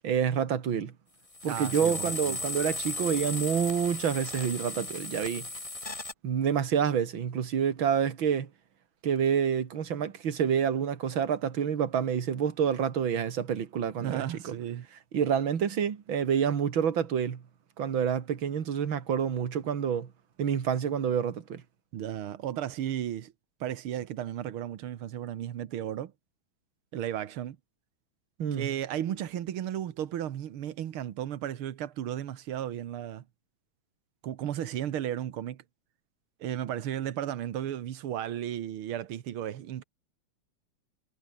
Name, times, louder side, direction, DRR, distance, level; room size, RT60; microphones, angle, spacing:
voice 1, 0.0-0.9 1.4-5.5 6.2-8.5 9.0-14.5 15.1-17.4 17.8-20.1 20.4-21.6 28.4-28.7, right 8 dB, 45° right, 2.0 m, -28 dB
sound 1, 1.3-6.1, left 2 dB, 15° left, 1.4 m, -36 dB
voice 2, 1.4-2.4 14.0-14.9 21.9-23.3 23.6-26.1 26.9-27.6 28.5-33.2 34.2-35.6 36.4-39.8, right 11 dB, 75° right, 1.2 m, -34 dB
omnidirectional pair, 4.1 m